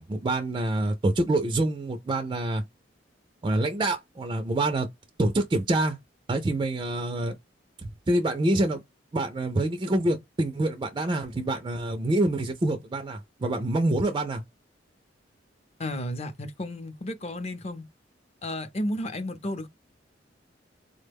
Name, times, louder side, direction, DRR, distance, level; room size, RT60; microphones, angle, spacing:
voice 1, 0.0-2.6 3.4-4.9 5.2-6.0 6.3-7.4 7.8-8.8 9.1-14.4, right 1 dB, 25° right, 0.3 m, -26 dB
voice 2, 15.8-17.8 18.4-19.7, left 1 dB, 35° left, 0.6 m, -32 dB
3.7 x 2.1 x 3.4 m
head